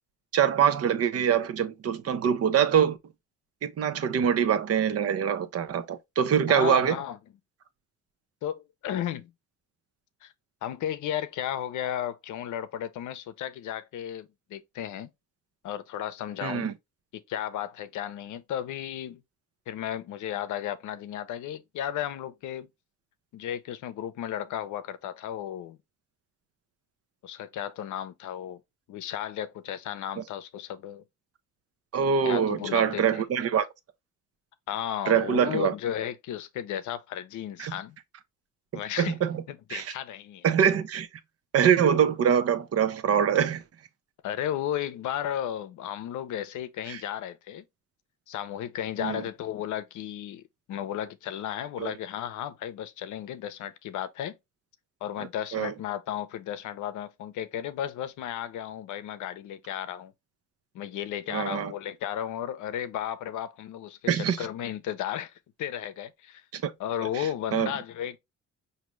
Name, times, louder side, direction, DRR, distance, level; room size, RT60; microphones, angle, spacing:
voice 1, 0.3-3.0 3.6-7.0 16.4-16.7 31.9-33.7 35.1-35.7 37.6-37.8 38.7-39.4 39.7-39.9 40.4-41.1 41.5-43.6 46.9-47.0 49.0-49.2 51.8-51.9 55.5-55.7 61.3-61.7 64.1-64.4 66.5-66.7 67.1-67.7, right 8 dB, 50° right, 0.7 m, -24 dB
voice 2, 6.5-7.2 8.4-9.3 10.2-10.3 10.6-15.1 15.6-16.7 17.1-19.2 19.7-22.7 23.3-25.8 27.2-28.6 28.9-31.0 32.2-33.2 34.7-38.0 38.7-39.2 39.5-40.4 44.2-47.7 48.3-50.4 50.7-54.4 55.0-60.1 60.7-65.3 65.6-66.4 66.8-68.2, left 10 dB, 75° left, 0.7 m, -34 dB
5.0 x 2.7 x 3.1 m
cardioid pair, 90°, 30 cm